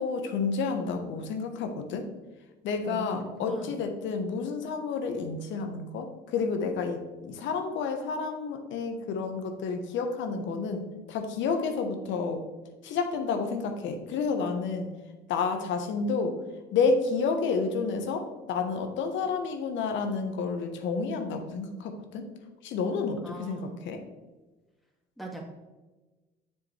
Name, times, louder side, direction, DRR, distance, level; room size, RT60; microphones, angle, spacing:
voice 1, 0.0-2.0 2.6-12.4 12.8-14.9 15.3-16.3 16.7-22.3 22.6-24.0, left 4 dB, 65° left, 5 dB, 1.2 m, -30 dB
voice 2, 2.8-3.8 23.2-23.8 25.2-25.5, right 1 dB, ahead, -1 dB, 2.2 m, -40 dB
6.9 x 6.9 x 3.3 m, 1.2 s
hypercardioid pair, 65°, 21 cm